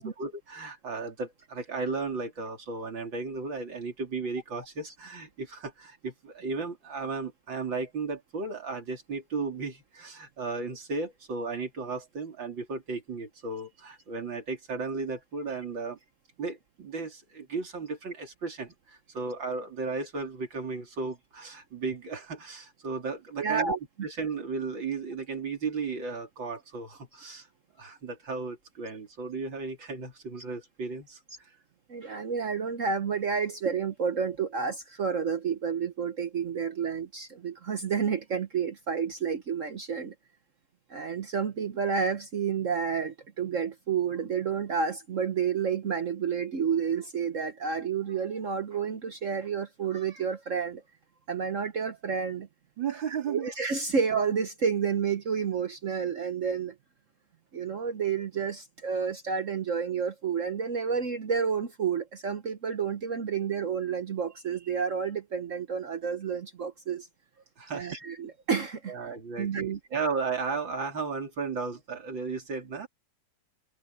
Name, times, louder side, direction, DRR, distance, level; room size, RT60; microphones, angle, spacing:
voice 1, 0.0-16.0 16.4-23.8 24.0-27.5 27.8-31.2 52.8-53.5 67.6-67.9 68.9-72.9, right 4 dB, 75° right, 4.2 m, -35 dB
voice 2, 23.4-23.8 31.9-40.1 40.9-50.8 51.3-52.5 53.1-56.7 57.5-67.1 67.7-69.8, right 6 dB, 50° right, 1.1 m, -30 dB
omnidirectional pair, 2.1 m